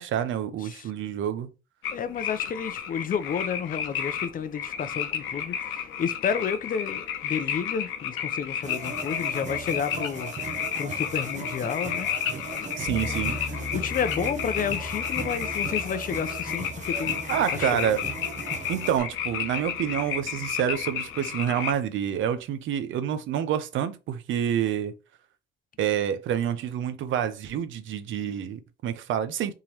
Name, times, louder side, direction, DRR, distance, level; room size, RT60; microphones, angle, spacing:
voice 1, 0.0-1.5 12.8-13.6 17.3-18.0 18.7-24.9 25.8-29.5, right 9 dB, 75° right, 0.6 m, -28 dB
sound 1, 1.8-21.7, left 8 dB, 90° left, 0.7 m, -32 dB
voice 2, 1.9-10.3 10.8-12.1 12.5-13.4 13.7-17.2 17.6-18.0, left 7 dB, 45° left, 0.5 m, -31 dB
sound 2, 8.6-19.0, right 5 dB, 35° right, 0.7 m, -38 dB
sound 3, 12.9-21.0, left 2 dB, 10° right, 1.4 m, -41 dB
3.7 x 3.0 x 2.8 m
cardioid pair, 90°, 20 cm